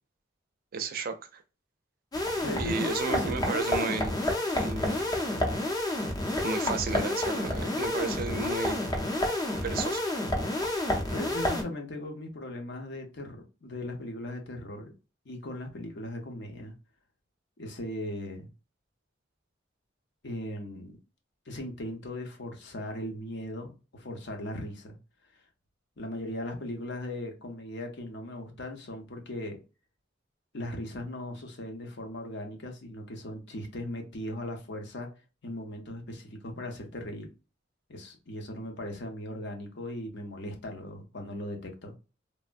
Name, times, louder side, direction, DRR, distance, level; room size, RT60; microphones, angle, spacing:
voice 1, 0.7-1.4 2.6-4.1 4.6-5.0 6.4-8.8 9.6-10.0, right 4 dB, 50° right, 0.4 m, -33 dB
sound 1, 2.1-11.6, left 1 dB, 20° left, 0.7 m, -29 dB
voice 2, 2.4-3.3 11.1-14.9 15.3-16.7 17.6-18.5 20.2-21.0 21.5-25.0 26.0-29.6 30.5-35.1 35.4-37.3 37.9-41.9, left 1 dB, 65° left, 0.8 m, -38 dB
3.3 x 2.1 x 2.5 m
head